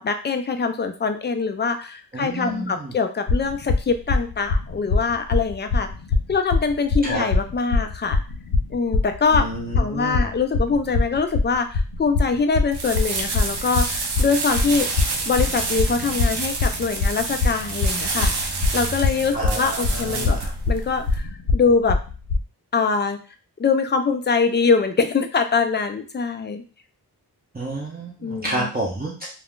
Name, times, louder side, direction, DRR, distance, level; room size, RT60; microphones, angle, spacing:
voice 1, 0.0-5.9 6.3-8.2 8.7-9.5 9.8-14.9 15.3-18.3 18.7-20.4 20.7-22.0 22.7-23.2 23.6-26.6 28.2-28.7, left 4 dB, 30° left, 7 dB, 0.3 m, -23 dB
voice 2, 2.1-2.9 7.0-7.3 9.3-10.2 19.3-20.5 27.5-29.3, right 1 dB, 25° right, -5 dB, 0.7 m, -29 dB
sound 1, 3.3-22.4, left 3 dB, 80° left, 0.6 m, -22 dB
sound 2, 12.7-21.2, right 3 dB, 80° right, 0.6 m, -28 dB
2.4 x 2.3 x 3.6 m, 0.38 s
wide cardioid pair, 110°, 39 cm